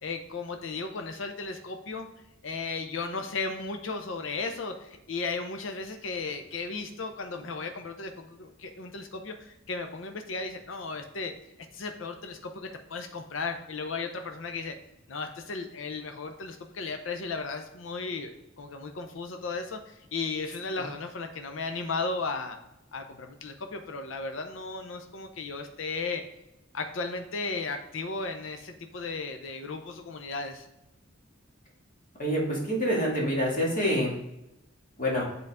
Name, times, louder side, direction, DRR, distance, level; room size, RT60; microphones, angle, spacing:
voice 1, 0.0-2.1 2.4-11.3 11.7-14.8 15.1-18.3 18.6-22.6 22.9-26.2 26.7-30.7, left 4 dB, 70° left, 6 dB, 0.6 m, -35 dB
voice 2, 32.2-34.1 35.0-35.2, equal, 40° left, -3 dB, 2.0 m, -26 dB
7.9 x 3.9 x 3.5 m, 0.90 s
head